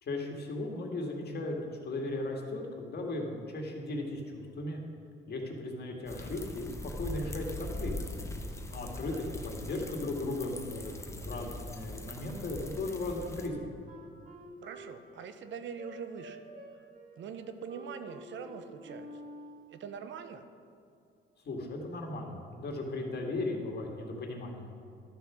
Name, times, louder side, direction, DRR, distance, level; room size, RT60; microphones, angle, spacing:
voice 1, 0.0-4.8 5.3-8.1 8.7-13.7 21.4-24.7, left 2 dB, 55° left, 1 dB, 2.0 m, -37 dB
sound 1, 6.1-13.5, left 1 dB, 15° left, 1.0 m, -41 dB
Wind instrument woodwind instrument, 13.5-19.8, equal, 40° right, 1.9 m, -49 dB
voice 2, 14.6-16.4 17.2-19.1 19.7-20.5, right 6 dB, 70° right, 8 dB, 0.8 m, -43 dB
12.0 x 6.9 x 6.2 m, 2.5 s
cardioid pair, 90°, 20 cm